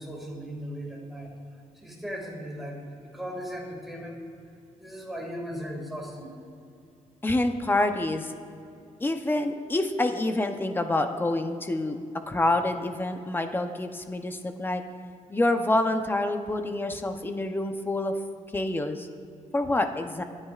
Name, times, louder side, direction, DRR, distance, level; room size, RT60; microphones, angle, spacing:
voice 1, 0.0-1.3 1.7-4.2 4.8-6.3 8.7-8.9, equal, ahead, -2 dB, 2.2 m, -37 dB
voice 2, 7.2-8.3 9.0-12.0 12.3-14.8 15.3-18.1 18.5-19.1 19.5-20.2, left 2 dB, 15° left, 6 dB, 0.7 m, -27 dB
24.5 x 9.7 x 2.4 m, 2.5 s
wide cardioid pair, 155°, 13 cm